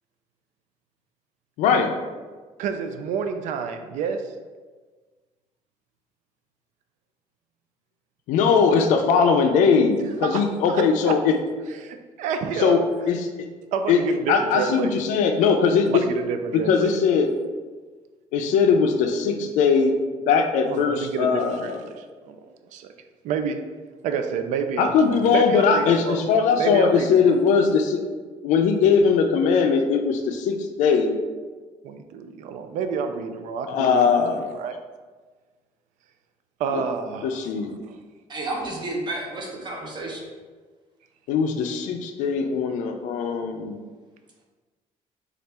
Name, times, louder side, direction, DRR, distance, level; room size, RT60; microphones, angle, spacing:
voice 1, 1.6-1.9 8.3-11.4 12.6-12.8 13.1-13.5 13.9-14.0 14.3-16.0 16.5-17.3 18.3-19.9 20.3-21.8 24.8-28.0 28.4-31.2 33.7-34.5 36.7-36.8 37.2-37.7 41.3-43.8, left 5 dB, 85° left, 5 dB, 0.4 m, -20 dB
voice 2, 2.6-4.3 10.2-11.2 11.8-12.8 13.7-14.9 15.9-16.9 20.7-22.4 22.7-22.9 23.2-23.6 24.0-26.3 26.6-27.4 31.8-34.1 34.5-34.8 36.6-38.0, right 6 dB, 80° right, 7 dB, 0.4 m, -29 dB
voice 3, 38.3-40.2, right 2 dB, 35° right, -1 dB, 0.8 m, -31 dB
4.1 x 2.4 x 3.3 m, 1.4 s
cardioid pair, 140°, 12 cm